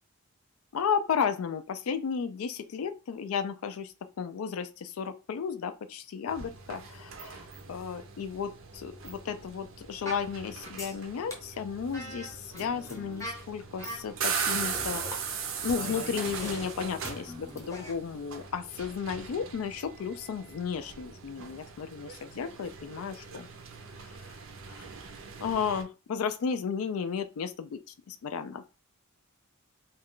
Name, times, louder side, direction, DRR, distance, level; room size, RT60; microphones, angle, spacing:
voice 1, 0.7-15.0 15.6-23.5 24.7-24.8 25.4-27.8 28.1-28.7, left 6 dB, 75° left, 0.4 m, -33 dB
sound 1, 6.3-25.8, right 6 dB, 65° right, 0.5 m, -40 dB
sound 2, 10.0-10.3 10.6-11.0 11.3-11.4 11.9-13.4 13.8-14.1 14.5-15.2 15.7-17.9, left 1 dB, 15° left, 0.7 m, -41 dB
2.4 x 2.2 x 3.6 m
head